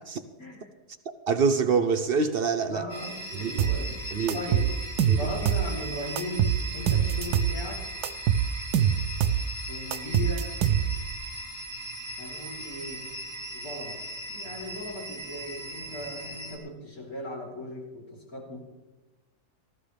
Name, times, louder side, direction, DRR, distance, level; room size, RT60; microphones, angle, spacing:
voice 1, 0.4-0.7 2.7-4.0 4.3-4.7 5.2-7.9 9.7-10.5 12.2-13.1 13.5-18.6, left 1 dB, 65° left, -2 dB, 4.1 m, -38 dB
voice 2, 1.1-2.8 3.3-3.7 4.1-4.4 5.1-5.3, right 5 dB, 55° right, 10 dB, 0.6 m, -26 dB
sound 1, 2.9-16.6, right 1 dB, 15° right, 2.4 m, -39 dB
sound 2, 3.6-3.8 4.3-5.7 6.2-7.6 8.0-9.5 9.9-11.1, right 9 dB, 85° right, 1.2 m, -24 dB
19.0 x 14.0 x 3.4 m, 1.1 s
omnidirectional pair, 1.7 m